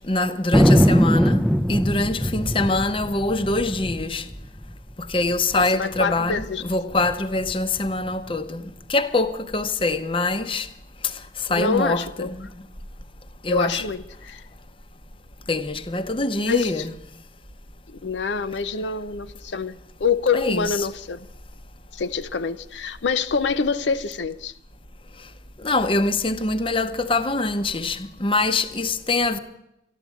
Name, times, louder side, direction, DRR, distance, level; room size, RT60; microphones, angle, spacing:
voice 1, 0.1-1.4 1.7-4.2 5.0-8.6 8.9-10.7 11.0-12.5 13.4-13.8 15.5-16.9 20.3-20.9 25.6-29.4, left 2 dB, 30° left, 0.8 m, -24 dB
Thunder, 0.5-5.4 5.6-5.7 5.9-6.5 7.0-8.1, equal, ahead, 0.5 m, -21 dB
voice 2, 5.5-6.8 11.5-12.3 13.5-14.4 16.4-16.9 17.9-21.3 21.9-24.5, left 5 dB, 85° left, 0.6 m, -26 dB
13.5 x 12.0 x 8.2 m
head